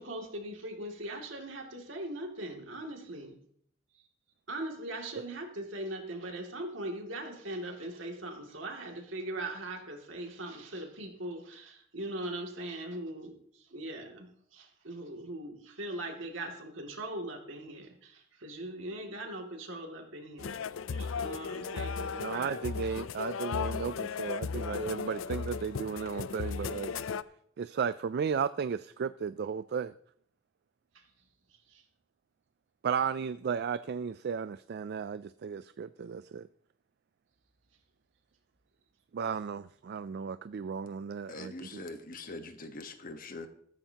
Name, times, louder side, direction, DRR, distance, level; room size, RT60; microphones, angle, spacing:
voice 1, 0.0-3.3 4.5-13.3 13.7-20.6 20.9-22.6 31.7-31.8, right 1 dB, 75° right, 2.6 m, -40 dB
sound 1, 20.4-27.2, left 5 dB, 90° left, 0.5 m, -36 dB
voice 2, 22.2-26.9 27.6-29.9 32.8-36.5 39.1-41.8, right 6 dB, 55° right, 0.3 m, -34 dB
voice 3, 41.3-43.5, left 2 dB, 45° left, 1.3 m, -43 dB
14.5 x 13.5 x 2.9 m
head